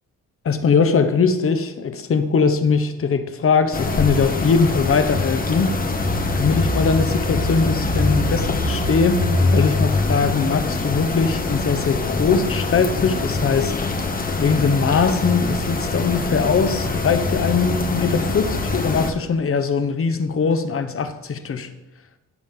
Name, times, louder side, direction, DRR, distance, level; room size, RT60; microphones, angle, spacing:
voice 1, 0.4-5.7 6.4-21.7, left 5 dB, 45° left, 9 dB, 1.0 m, -21 dB
sound 1, 3.7-19.1, left 2 dB, 25° left, 1.2 m, -23 dB
14.5 x 5.2 x 3.7 m, 1.0 s
supercardioid pair, 70°, 32 cm